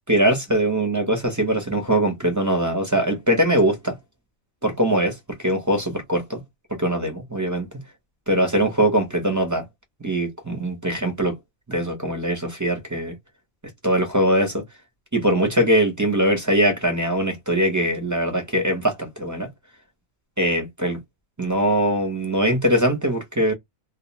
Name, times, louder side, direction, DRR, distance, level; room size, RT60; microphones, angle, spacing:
voice 1, 0.1-4.0 4.6-6.4 6.7-7.7 8.3-9.6 10.0-11.4 11.7-13.1 13.8-14.6 15.1-19.5 20.4-21.0 21.4-23.5, right 1 dB, 20° right, 0.5 m, -22 dB
2.3 x 2.2 x 2.9 m
omnidirectional pair, 1.4 m